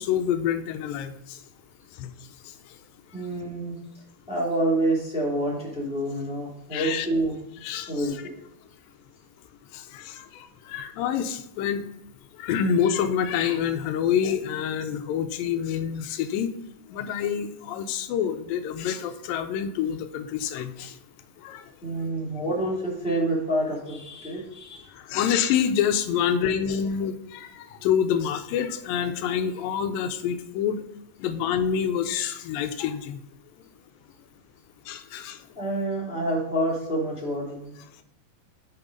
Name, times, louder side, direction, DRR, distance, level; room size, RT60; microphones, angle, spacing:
voice 1, 0.0-1.4 2.0-2.1 6.7-7.1 7.6-8.1 9.7-11.8 12.4-16.5 16.9-21.0 21.4-21.6 25.0-30.8 31.2-33.2 34.9-35.4, left 8 dB, 85° left, 8 dB, 2.4 m, -27 dB
voice 2, 3.1-3.7 4.3-7.3 7.9-8.2 21.8-24.9 35.6-37.7, right 1 dB, ahead, -5 dB, 1.8 m, -27 dB
6.4 x 6.0 x 5.2 m, 0.82 s
omnidirectional pair, 4.0 m